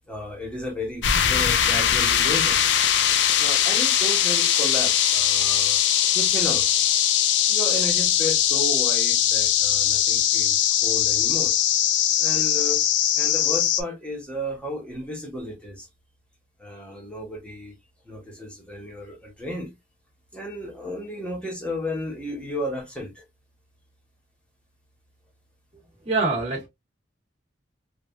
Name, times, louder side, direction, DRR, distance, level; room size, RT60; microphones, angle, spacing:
voice 1, 0.1-2.6 3.4-5.8 6.1-6.7 7.5-11.5 12.2-12.8 13.1-15.9 16.6-17.7 18.0-19.7 20.3-23.2, left 1 dB, 5° left, 1.2 m, -33 dB
sound 1, 1.0-13.8, left 10 dB, 80° left, 0.4 m, -21 dB
voice 2, 26.0-26.7, right 3 dB, 35° right, 1.1 m, -24 dB
3.2 x 2.5 x 2.4 m
head